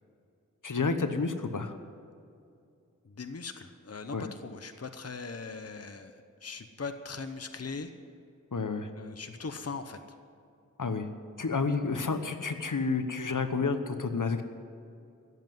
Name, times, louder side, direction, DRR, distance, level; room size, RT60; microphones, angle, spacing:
voice 1, 0.6-1.8 4.1-4.2 8.5-8.9 10.8-11.1 11.4-14.4, left 4 dB, 75° left, 8 dB, 1.0 m, -30 dB
voice 2, 3.0-7.9 9.0-10.0, left 4 dB, 50° left, 8 dB, 0.9 m, -40 dB
16.5 x 7.8 x 9.3 m, 2.4 s
wide cardioid pair, 45°, 32 cm